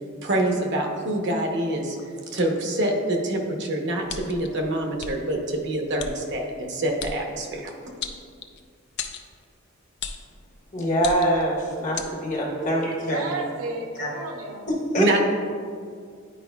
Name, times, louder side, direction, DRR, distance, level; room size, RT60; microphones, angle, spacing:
voice 1, 0.2-2.0 2.3-7.7 15.0-15.2, right 1 dB, 55° right, 1 dB, 0.8 m, -26 dB
sound 1, 4.1-4.5 5.0-5.1 6.0-6.1 7.0-7.2 8.0-8.6 9.0-9.3 10.0-10.3 11.0-11.4 12.0-12.1, left 6 dB, 55° left, 0.4 m, -33 dB
voice 2, 10.7-13.3 14.0-14.1 14.7-15.2, equal, 40° left, -2 dB, 1.2 m, -24 dB
voice 3, 12.7-14.7, right 3 dB, 85° right, 2 dB, 0.8 m, -33 dB
10.0 x 4.8 x 2.3 m, 2.2 s
head